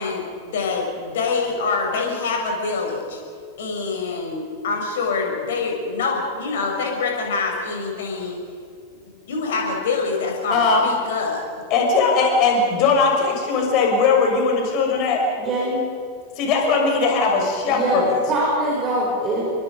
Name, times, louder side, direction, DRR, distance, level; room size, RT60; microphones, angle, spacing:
voice 1, 0.0-3.2 3.6-8.4 9.3-11.4 18.0-18.2, left 4 dB, 60° left, 0 dB, 7.5 m, -25 dB
voice 2, 10.5-10.9 11.7-15.2 16.4-18.1, left 4 dB, 40° left, 1 dB, 6.4 m, -19 dB
voice 3, 15.4-15.8 17.6-19.4, right 1 dB, 30° right, -4 dB, 7.2 m, -23 dB
29.5 x 23.0 x 5.4 m, 2.2 s
figure-of-eight pair, 90°, 0 cm